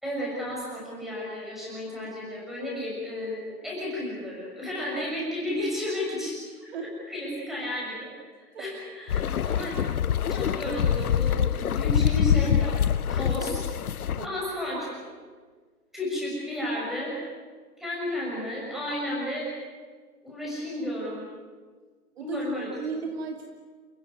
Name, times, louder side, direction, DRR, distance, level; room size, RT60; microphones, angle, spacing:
voice 1, 0.0-6.4 7.1-8.1 8.4-9.8 10.3-12.8 13.1-13.6 14.2-14.9 15.9-17.1 17.8-19.5 20.2-21.2 22.2-22.7, left 1 dB, ahead, -5 dB, 6.5 m, -32 dB
sound 1, 9.1-14.3, left 9 dB, 70° left, 0.8 m, -25 dB
voice 2, 14.1-14.8 22.1-23.5, right 4 dB, 40° right, 2 dB, 2.6 m, -37 dB
29.5 x 16.0 x 9.5 m, 1.5 s
hypercardioid pair, 160°, 46 cm